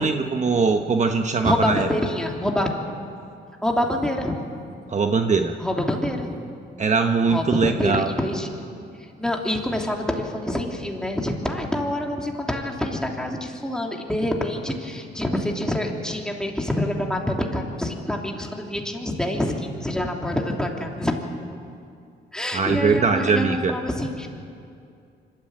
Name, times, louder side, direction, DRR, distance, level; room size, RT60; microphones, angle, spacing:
voice 1, 0.0-1.9 4.9-5.6 6.8-8.1 22.5-23.7, right 4 dB, 35° right, 5 dB, 1.1 m, -21 dB
voice 2, 1.4-2.7 3.6-4.4 5.6-6.4 7.3-8.5 8.9-21.2 22.3-24.3, left 1 dB, 5° left, 1 dB, 3.0 m, -26 dB
25.0 x 13.0 x 8.8 m, 2.4 s
cardioid pair, 90°, 20 cm